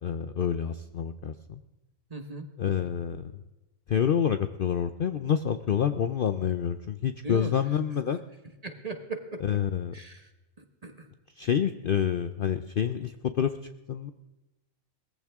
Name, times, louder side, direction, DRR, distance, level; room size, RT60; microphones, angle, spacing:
voice 1, 0.0-1.6 2.6-3.3 3.9-8.2 9.4-9.9 11.4-13.5 13.9-14.1, left 8 dB, 55° left, 10 dB, 0.7 m, -28 dB
voice 2, 2.1-2.9 7.2-7.5 8.6-9.6 9.9-10.3 10.6-11.1, right 3 dB, 30° right, 6 dB, 1.4 m, -39 dB
20.0 x 14.5 x 3.6 m, 1.0 s
omnidirectional pair, 1.4 m